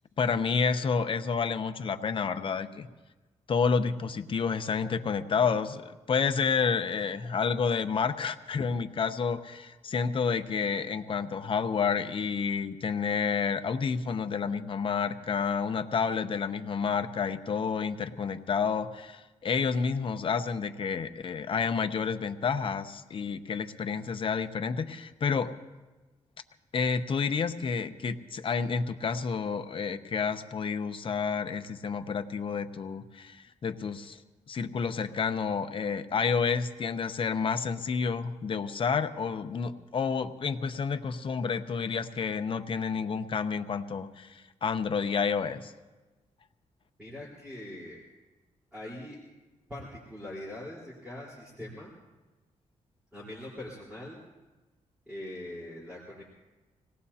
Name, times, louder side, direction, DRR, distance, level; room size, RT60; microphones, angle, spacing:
voice 1, 0.2-2.9 3.5-25.5 26.7-34.2 34.5-45.7, left 5 dB, 45° left, 8 dB, 0.7 m, -30 dB
voice 2, 47.0-48.0 48.7-49.2 49.7-51.9 53.1-54.2 55.1-56.2, left 1 dB, 10° right, -6 dB, 4.0 m, -42 dB
26.0 x 18.5 x 2.8 m, 1.2 s
wide cardioid pair, 150°, 13 cm